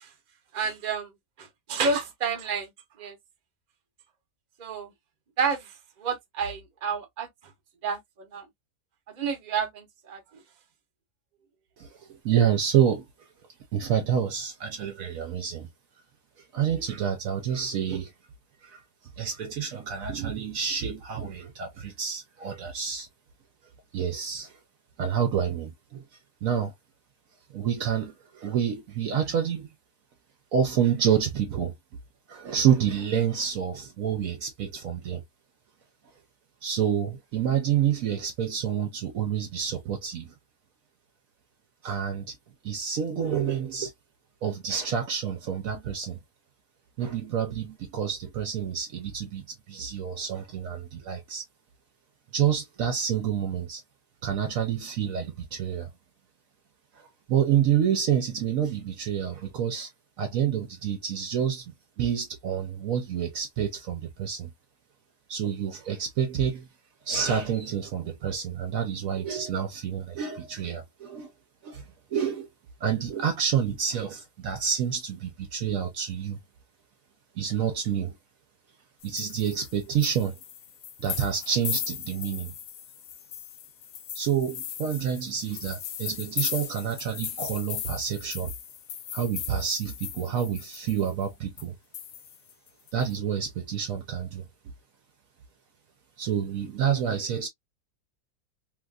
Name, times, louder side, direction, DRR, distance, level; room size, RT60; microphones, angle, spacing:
voice 1, 0.5-1.1 1.4-2.7 3.0-3.1 4.6-4.9 5.4-5.6 6.0-7.3 7.8-8.0 8.3-8.4 9.2-10.2, right 5 dB, 35° right, 0.8 m, -29 dB
voice 2, 11.8-13.1 13.7-15.7 16.5-18.1 18.6-18.8 19.2-23.1 23.9-24.6 25.0-26.0 26.4-26.7 27.5-29.7 30.5-31.7 32.3-35.2 36.6-40.3 41.8-42.4 42.6-43.9 44.4-46.2 47.0-51.4 52.3-53.8 54.2-55.9 57.0-59.9 60.2-64.5 65.3-66.7 67.1-71.3 71.6-71.8 72.1-72.5 72.8-76.4 77.4-78.1 79.0-80.4 81.0-82.5 84.1-88.5 89.1-91.8 92.9-94.4 96.2-97.5, right 8 dB, 70° right, 1.0 m, -28 dB
sound 1, 79.0-91.2 91.6-91.7 91.9-93.2, left 9 dB, 65° left, 0.8 m, -37 dB
3.3 x 2.5 x 2.2 m
omnidirectional pair, 1.7 m